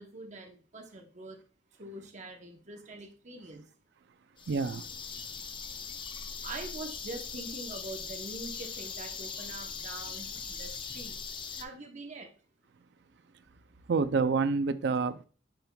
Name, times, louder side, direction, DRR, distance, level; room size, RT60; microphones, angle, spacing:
voice 1, 0.0-1.4 1.8-3.7 6.4-11.2 11.6-12.3, right 2 dB, 40° right, 0.9 m, -44 dB
sound 1, 4.4-11.6, left 6 dB, 25° left, 0.5 m, -40 dB
voice 2, 4.5-5.9 13.3-13.4 13.9-15.2, right 4 dB, 60° right, 0.4 m, -30 dB
10.0 x 5.3 x 2.2 m
head